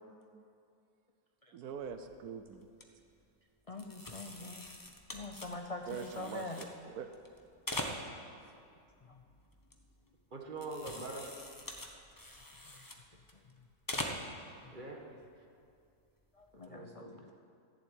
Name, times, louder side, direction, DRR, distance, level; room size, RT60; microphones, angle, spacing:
voice 1, 0.1-0.4 1.5-2.7 4.2-4.4 5.9-7.1, right 6 dB, 75° right, 8 dB, 1.2 m, -44 dB
sound 1, 1.8-2.1 2.5-2.8 3.8-6.7 7.1-8.4 8.8-10.2 10.5-13.5 13.8-14.4 14.7-14.8 16.4-16.7, left 1 dB, 15° left, 0.9 m, -43 dB
voice 2, 3.7-4.7 5.1-6.7 9.0-9.2 12.6-12.8 13.1-13.4 14.3-14.8 16.3-17.3, left 2 dB, 50° left, 3 dB, 0.4 m, -45 dB
voice 3, 10.3-11.3 14.7-15.2 16.5-17.3, right 2 dB, 30° right, 0 dB, 1.7 m, -44 dB
14.5 x 7.5 x 8.9 m, 2.4 s
omnidirectional pair, 1.7 m